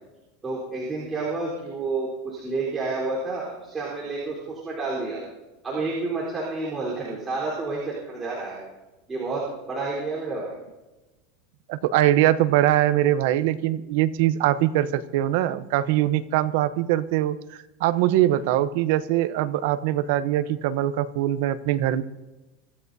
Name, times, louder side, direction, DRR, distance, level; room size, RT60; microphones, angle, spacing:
voice 1, 0.4-5.2 5.6-8.6 9.1-10.5, right 3 dB, 15° right, -5 dB, 3.9 m, -30 dB
voice 2, 11.7-17.4 17.8-22.0, right 13 dB, 65° right, 13 dB, 0.8 m, -22 dB
24.5 x 14.5 x 2.7 m, 1.1 s
supercardioid pair, 150°, 0 cm